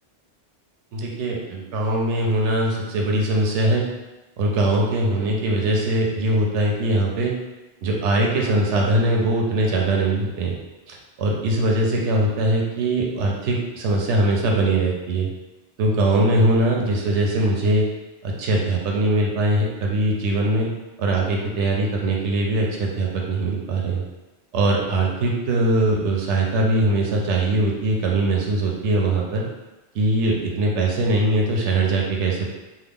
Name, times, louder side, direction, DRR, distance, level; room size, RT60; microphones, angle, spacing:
voice 1, 0.9-3.8 4.4-7.3 7.8-10.6 10.9-15.3 15.8-17.8 18.2-20.7 21.0-24.0 24.5-29.4 29.9-32.5, right 1 dB, 80° right, -1 dB, 0.9 m, -21 dB
3.3 x 2.0 x 3.6 m, 1.1 s
omnidirectional pair, 1.2 m